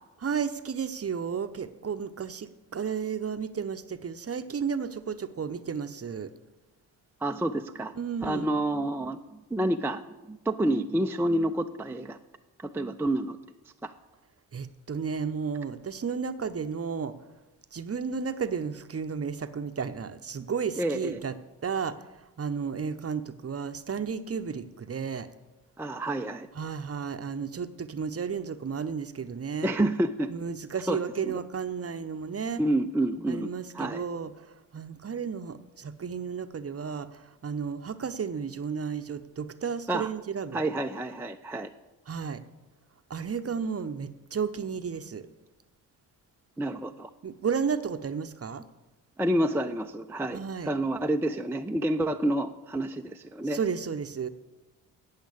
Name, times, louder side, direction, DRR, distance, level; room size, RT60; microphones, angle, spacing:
voice 1, 0.2-6.3 8.0-8.5 14.5-17.2 17.7-21.3 21.6-22.1 22.4-25.3 26.6-29.7 30.3-32.6 33.3-40.6 42.1-42.4 43.1-45.3 47.2-48.7 50.3-50.7 53.5-54.3, right 6 dB, 30° right, 10 dB, 0.8 m, -33 dB
voice 2, 7.2-7.9 8.2-10.0 10.3-12.2 12.6-13.4 13.8-13.9 20.8-21.2 25.8-26.5 29.6-30.3 30.9-31.0 31.2-31.4 32.6-33.5 33.7-34.0 39.9-40.1 40.5-41.7 46.6-47.1 49.2-53.6, right 1 dB, 5° right, 5 dB, 0.5 m, -28 dB
8.6 x 7.9 x 8.3 m, 1.1 s
hypercardioid pair, 50°, 47 cm